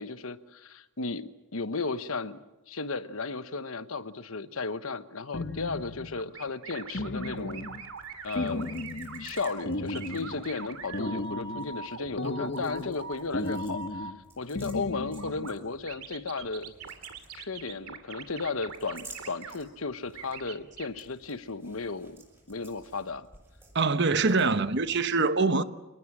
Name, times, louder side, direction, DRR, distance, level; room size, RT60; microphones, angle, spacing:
voice 1, 0.0-2.4 2.7-7.7 8.2-8.8 9.2-14.1 14.4-16.7 17.3-22.2 22.5-23.3 24.3-24.5, left 4 dB, 70° left, 1.1 m, -35 dB
sound 1, 5.3-6.2 6.9-7.9 8.4-9.3 9.7-10.5 10.9-11.8 12.2-13.0 13.3-14.2 14.6-15.5, left 2 dB, 55° left, 1.5 m, -35 dB
sound 2, 6.2-14.1 15.2-15.5 15.9-19.5 20.1-20.9, right 5 dB, 80° right, 2.6 m, -42 dB
sound 3, 7.3-25.0, right 2 dB, 10° right, 7.2 m, -56 dB
voice 2, 23.7-25.6, right 3 dB, 55° right, 1.1 m, -24 dB
28.0 x 20.0 x 7.4 m
head